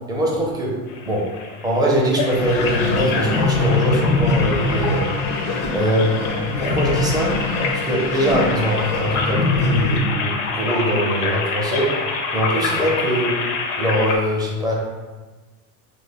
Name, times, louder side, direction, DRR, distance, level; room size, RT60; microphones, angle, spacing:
voice 1, 0.1-1.4 1.6-5.0 5.7-6.2 6.5-7.4 7.7-12.0 12.3-13.4 13.8-14.7, equal, 10° right, -3 dB, 0.5 m, -22 dB
sound 1, 0.9-14.2, left 4 dB, 50° left, 0.6 m, -27 dB
sound 2, 2.3-10.0, left 3 dB, 80° left, 0.8 m, -23 dB
2.4 x 2.2 x 3.9 m, 1.3 s
supercardioid pair, 115°, 43 cm